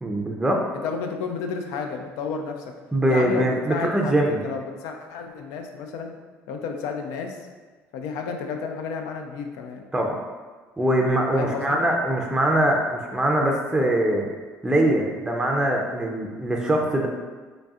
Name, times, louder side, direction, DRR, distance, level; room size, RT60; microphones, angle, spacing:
voice 1, 0.0-0.6 2.9-4.4 9.9-10.2 10.8-14.3 14.6-17.1, right 1 dB, 10° right, 0 dB, 0.5 m, -22 dB
voice 2, 0.8-2.6 3.1-6.1 6.5-7.4 7.9-9.8 11.3-11.8, left 5 dB, 80° left, 4 dB, 0.4 m, -31 dB
3.9 x 3.3 x 2.4 m, 1.4 s
supercardioid pair, 85°, 6 cm